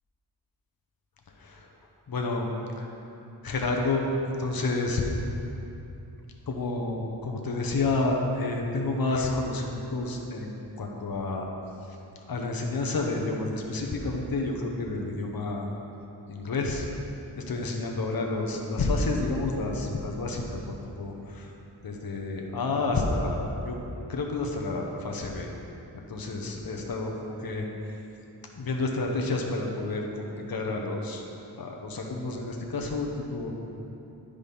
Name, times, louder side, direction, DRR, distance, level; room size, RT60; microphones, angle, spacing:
voice 1, 1.4-1.7 2.1-2.5 2.8-2.9 3.4-5.0 6.5-11.5 11.8-12.0 12.3-15.7 16.3-16.9 17.3-21.5 21.8-23.8 24.1-25.5 25.9-27.7 28.5-31.2 31.6-33.5, left 2 dB, 60° left, 0 dB, 1.0 m, -30 dB
10.5 x 5.0 x 5.5 m, 2.9 s
wide cardioid pair, 75°, 41 cm